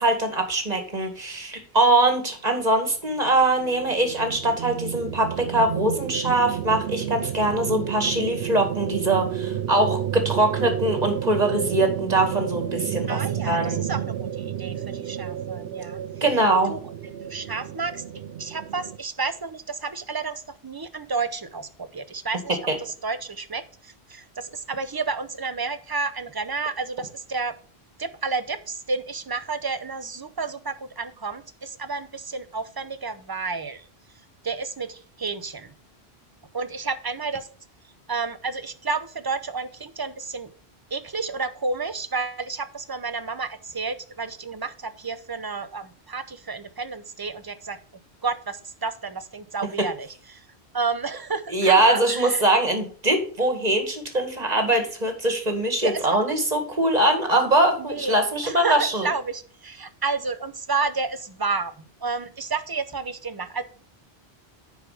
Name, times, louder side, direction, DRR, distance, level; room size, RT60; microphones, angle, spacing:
voice 1, 0.0-13.2 13.5-13.8 16.2-16.7 22.7-22.8 51.5-59.1, right 1 dB, 40° right, 5 dB, 2.1 m, -22 dB
sound 1, 3.1-19.0, right 10 dB, 75° right, 0.8 m, -31 dB
voice 2, 13.1-16.0 16.7-16.8 17.2-18.0 18.4-27.5 28.0-33.9 34.4-35.7 36.5-37.5 38.1-40.5 40.9-47.8 48.2-50.5 50.7-52.4 55.8-56.2 57.8-58.2 58.4-61.7 62.0-63.6, right 4 dB, 25° right, 11 dB, 0.7 m, -31 dB
9.9 x 4.9 x 4.9 m, 0.42 s
omnidirectional pair, 1.1 m